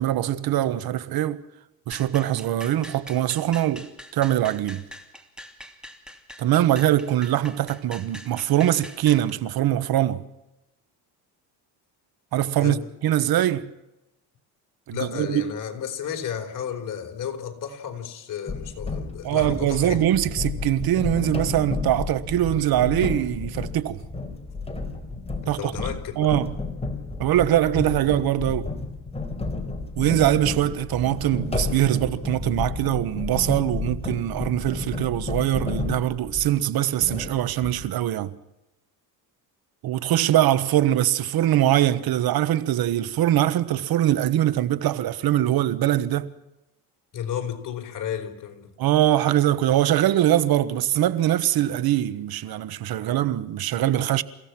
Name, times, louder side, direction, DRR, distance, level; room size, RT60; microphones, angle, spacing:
voice 1, 0.0-1.4 1.9-3.9 4.1-4.8 6.4-10.2 12.3-13.7 14.9-15.5 19.2-24.0 25.5-25.7 26.2-26.5 27.2-28.7 30.0-38.3 39.8-46.3 48.8-54.2, right 12 dB, 60° right, 1.3 m, -22 dB
sound 1, 1.9-9.3, left 1 dB, ahead, 2.8 m, -43 dB
voice 2, 14.9-20.1 25.4-26.3 47.1-48.7, left 8 dB, 50° left, 4.4 m, -32 dB
sound 2, 18.5-36.6 37.0-37.9, left 3 dB, 15° left, 4.2 m, -32 dB
29.5 x 16.5 x 6.1 m
cardioid pair, 100°, 40 cm